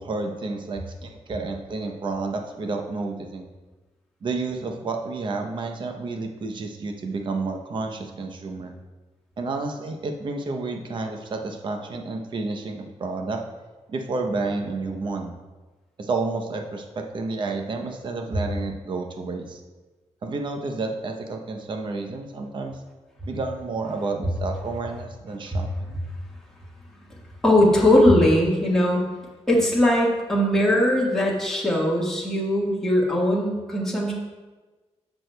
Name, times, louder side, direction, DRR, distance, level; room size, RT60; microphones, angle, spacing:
voice 1, 0.0-3.5 4.2-8.7 9.4-13.4 13.9-15.3 16.0-19.6 20.2-22.8 23.3-26.0, right 3 dB, 40° right, 4 dB, 0.7 m, -30 dB
voice 2, 27.4-29.0 29.5-34.1, left 1 dB, 5° left, -4 dB, 1.4 m, -20 dB
14.5 x 6.2 x 2.2 m, 1.2 s
wide cardioid pair, 175°, 12 cm